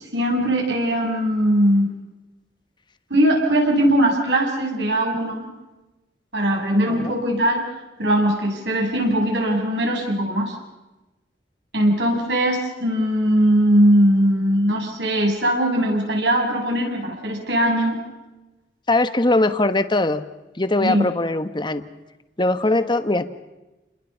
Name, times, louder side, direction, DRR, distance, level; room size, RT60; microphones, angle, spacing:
voice 1, 0.0-1.9 3.1-5.5 6.3-7.6 8.0-10.5 11.7-18.0 20.8-21.1, right 1 dB, 80° right, 0 dB, 7.6 m, -20 dB
voice 2, 18.9-20.2 20.6-21.8 22.4-23.3, left 2 dB, 25° left, 10 dB, 1.3 m, -21 dB
29.5 x 21.5 x 5.8 m, 1.0 s
head